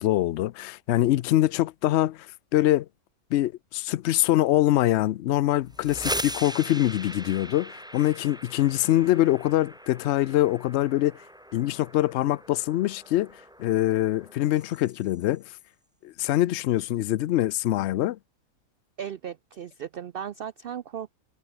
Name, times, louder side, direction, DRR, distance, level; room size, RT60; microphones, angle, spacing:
voice 1, 0.0-2.9 3.3-11.2 11.5-13.3 13.6-15.4 16.0-18.2, left 14 dB, 65° left, 0.7 m, -24 dB
sound 1, 5.6-15.3, equal, 5° right, 3.0 m, -39 dB
voice 2, 19.0-21.1, right 9 dB, 60° right, 0.6 m, -36 dB
omnidirectional pair, 1.5 m